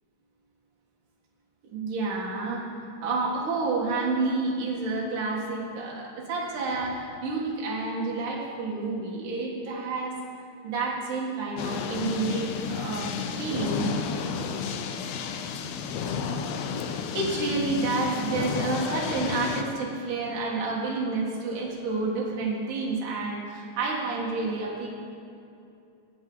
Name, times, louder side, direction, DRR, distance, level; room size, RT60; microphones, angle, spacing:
voice 1, 1.6-10.2 10.6-13.1 13.4-13.9 16.9-24.9, right 3 dB, 65° right, -4 dB, 3.0 m, -29 dB
sound 1, 11.6-19.6, left 6 dB, 85° left, 1.5 m, -32 dB
17.0 x 9.1 x 3.9 m, 2.6 s
omnidirectional pair, 4.0 m